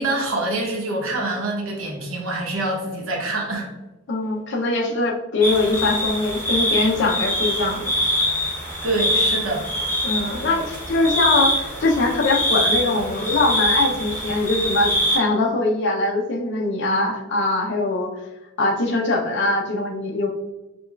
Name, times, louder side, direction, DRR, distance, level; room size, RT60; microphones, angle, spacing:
voice 1, 0.0-3.7 8.8-9.7, right 2 dB, 65° right, -2 dB, 0.9 m, -25 dB
voice 2, 4.1-7.9 10.0-18.1 18.6-20.3, left 2 dB, 50° left, 1 dB, 0.5 m, -22 dB
sound 1, 5.4-15.2, equal, 10° left, 0.7 m, -24 dB
5.2 x 2.3 x 2.3 m, 1.1 s
head